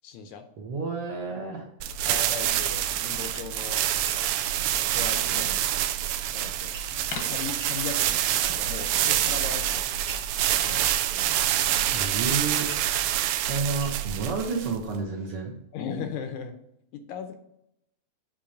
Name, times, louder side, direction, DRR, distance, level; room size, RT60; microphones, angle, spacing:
voice 1, 0.0-0.5 2.1-3.8 4.7-5.6 6.3-6.7 7.2-8.2 8.5-9.9 10.6-11.3 13.7-14.0 15.7-16.6 16.9-17.3, left 6 dB, 80° left, 7 dB, 1.9 m, -38 dB
voice 2, 0.6-1.7 11.9-12.7 13.5-15.6, right 4 dB, 60° right, -1 dB, 1.7 m, -30 dB
sound 1, 1.8-14.9, right 12 dB, 80° right, 1.8 m, -26 dB
sound 2, 3.2-12.7, left 4 dB, 60° left, 1.4 m, -46 dB
sound 3, 3.2-3.4 4.0-4.3 4.9-5.1 6.7-7.1 7.6-7.8 8.4-8.8 9.2-9.6 10.1-10.3 10.9-11.1 11.7-12.0 12.7-12.9 13.8-14.1, right 3 dB, 40° right, 0.6 m, -44 dB
8.6 x 3.0 x 6.4 m, 0.80 s
omnidirectional pair, 3.5 m